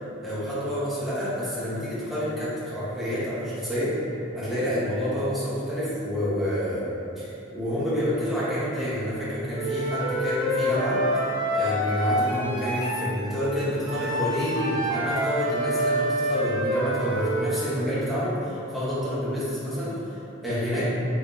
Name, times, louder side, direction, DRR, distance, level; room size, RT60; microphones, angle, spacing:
voice 1, 0.2-3.9 4.3-6.9 7.2-20.9, equal, ahead, -12 dB, 1.2 m, -28 dB
Wind instrument woodwind instrument, 9.5-13.1 13.9-17.6, equal, 25° right, 0.6 m, -27 dB
3.9 x 3.9 x 2.7 m, 2.8 s
head